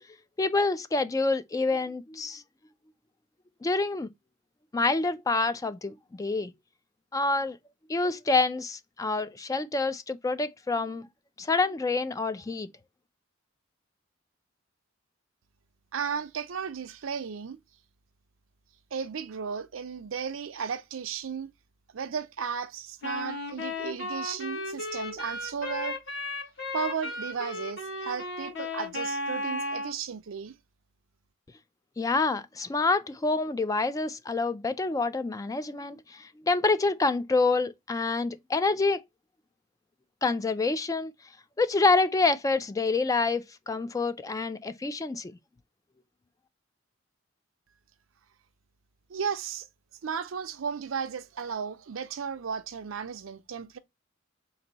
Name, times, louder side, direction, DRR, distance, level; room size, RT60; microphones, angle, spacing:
voice 1, 0.4-2.4 3.6-4.1 4.7-6.5 7.1-7.6 7.9-11.1 11.4-12.7 32.0-39.0 40.2-41.1 41.6-45.3, left 3 dB, 15° left, 0.3 m, -27 dB
voice 2, 15.9-17.6 18.9-21.5 21.9-26.0 26.7-30.5 49.1-49.7 50.0-53.8, right 6 dB, 80° right, 0.5 m, -34 dB
Wind instrument woodwind instrument, 23.0-30.0, left 2 dB, 65° left, 1.8 m, -35 dB
4.0 x 2.6 x 4.0 m
head